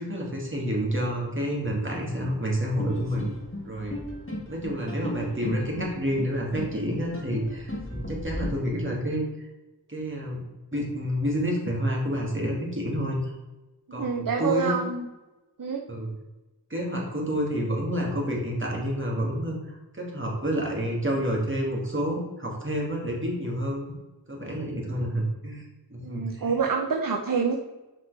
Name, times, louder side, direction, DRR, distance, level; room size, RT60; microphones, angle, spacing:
voice 1, 0.0-3.4 3.6-4.0 4.5-9.2 9.9-10.4 10.7-13.3 13.9-14.8 15.9-16.1 16.7-23.9 24.3-25.6 25.9-26.6, equal, 25° right, -2 dB, 2.5 m, -29 dB
sound 1, 2.8-8.5, left 1 dB, 30° left, 2.2 m, -36 dB
voice 2, 13.9-15.0 15.6-15.8 26.0-27.5, right 5 dB, 50° right, 1 dB, 0.9 m, -27 dB
7.3 x 5.8 x 3.4 m, 1.1 s
wide cardioid pair, 50°, 44 cm